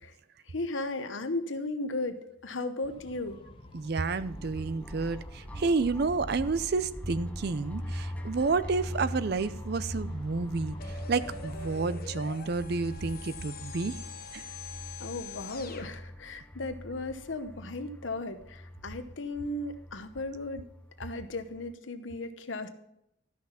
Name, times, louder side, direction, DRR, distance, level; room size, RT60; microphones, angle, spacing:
voice 1, 0.5-3.4 15.0-20.6 21.0-22.7, left 2 dB, 75° left, 9 dB, 1.0 m, -36 dB
sound 1, 2.8-11.8, left 1 dB, 25° left, 0.9 m, -50 dB
voice 2, 3.7-10.8 11.1-14.0 14.3-14.4, right 4 dB, 55° right, 15 dB, 0.5 m, -30 dB
sound 2, 4.2-21.7, equal, 5° left, 0.5 m, -42 dB
sound 3, 10.8-15.9, left 4 dB, 50° left, 1.0 m, -44 dB
12.5 x 6.0 x 5.6 m, 0.79 s
head